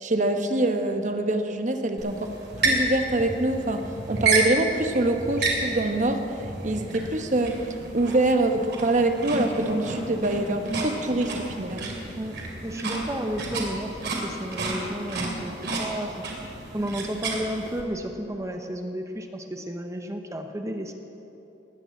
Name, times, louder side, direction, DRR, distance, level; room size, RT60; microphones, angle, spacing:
voice 1, 0.0-2.3 2.6-6.4 6.6-11.9, right 2 dB, 45° right, 6 dB, 1.1 m, -25 dB
sound 1, 2.0-17.8, right 3 dB, 65° right, 2.8 m, -31 dB
voice 2, 12.6-16.3 16.7-20.9, equal, 15° right, 5 dB, 0.8 m, -32 dB
19.5 x 6.9 x 8.2 m, 3.0 s
head